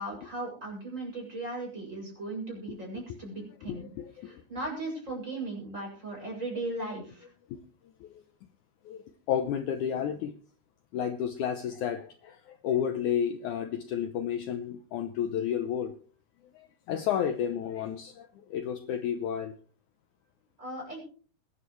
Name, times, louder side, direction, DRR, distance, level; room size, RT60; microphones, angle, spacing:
voice 1, 0.0-3.9 4.2-7.3 20.6-21.0, right 2 dB, 15° right, -1 dB, 7.1 m, -37 dB
voice 2, 3.7-4.4 7.5-7.6 8.0-8.2 8.8-9.0 9.3-10.3 10.9-15.9 16.5-19.5, left 9 dB, 90° left, 9 dB, 1.7 m, -31 dB
22.0 x 11.0 x 3.2 m, 0.43 s
omnidirectional pair, 4.6 m